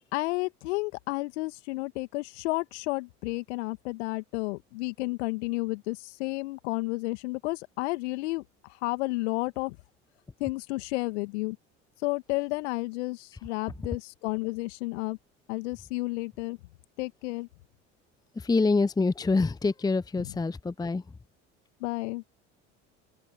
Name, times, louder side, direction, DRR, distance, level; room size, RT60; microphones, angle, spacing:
voice 1, 0.1-8.4 8.8-9.8 10.4-11.6 12.0-15.2 15.5-16.6 17.0-17.5 20.2-20.4 21.8-22.2, left 23 dB, 65° left, 2.1 m, -31 dB
voice 2, 18.4-21.0, left 3 dB, 10° left, 0.8 m, -26 dB
open air
figure-of-eight pair, 65°, 37 cm